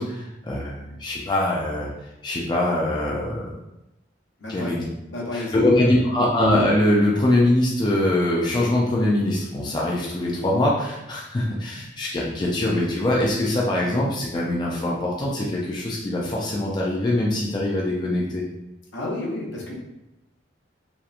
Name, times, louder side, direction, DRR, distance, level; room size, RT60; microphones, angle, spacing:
voice 1, 0.0-1.9 2.2-3.5 4.5-4.8 5.3-18.4, left 1 dB, 25° left, -4 dB, 0.3 m, -23 dB
voice 2, 4.4-4.8 5.1-6.3 18.9-19.7, left 1 dB, 75° left, -3 dB, 0.6 m, -31 dB
2.8 x 2.1 x 2.3 m, 0.90 s
head